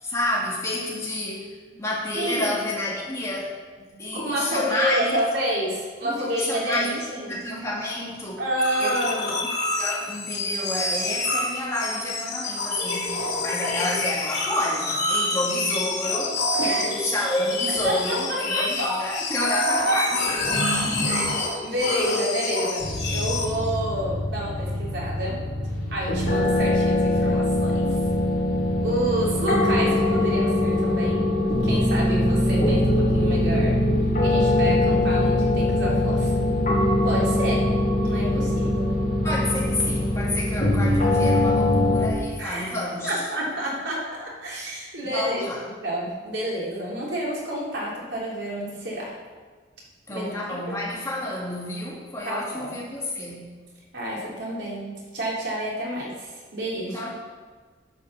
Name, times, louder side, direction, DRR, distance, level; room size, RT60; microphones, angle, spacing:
voice 1, 0.0-1.5 1.8-3.5 4.0-5.2 6.0-8.4 8.8-9.3 9.8-20.2 39.2-43.2 45.0-45.6 50.1-53.5 56.9-57.1, left 1 dB, 15° left, -5 dB, 2.3 m, -29 dB
voice 2, 1.7-2.5 4.1-7.4 8.4-9.4 16.6-16.9 17.8-18.9 19.9-20.0 21.1-21.3 21.6-25.4 25.9-28.0 28.8-31.3 31.6-33.8 34.2-36.4 37.0-37.7 38.0-39.0 42.4-42.7 43.0-45.5 45.8-49.1 50.1-50.3 50.7-50.8 52.2-52.7 53.9-57.1, equal, 80° right, -5 dB, 3.7 m, -29 dB
sound 1, 8.6-23.5, left 2 dB, 70° left, 3.1 m, -27 dB
sound 2, 22.8-42.1, left 1 dB, 50° left, 3.4 m, -22 dB
9.6 x 6.6 x 7.1 m, 1.4 s
head